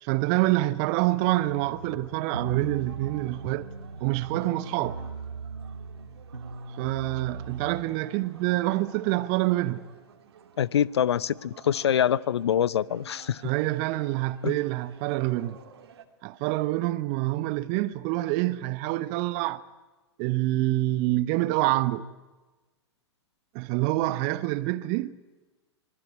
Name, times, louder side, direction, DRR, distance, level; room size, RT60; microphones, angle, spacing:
voice 1, 0.0-3.7 4.0-5.0 6.8-9.8 13.4-15.6 16.2-19.6 20.2-22.1 23.5-25.1, right 17 dB, 40° right, 1.0 m, -26 dB
sound 1, 1.3-7.8, right 4 dB, 85° right, 2.2 m, -39 dB
sound 2, 1.6-16.1, right 8 dB, 60° right, 2.7 m, -52 dB
voice 2, 10.6-13.4 14.4-14.6, left 9 dB, 65° left, 0.8 m, -25 dB
25.0 x 19.5 x 9.7 m
figure-of-eight pair, 105°, 15 cm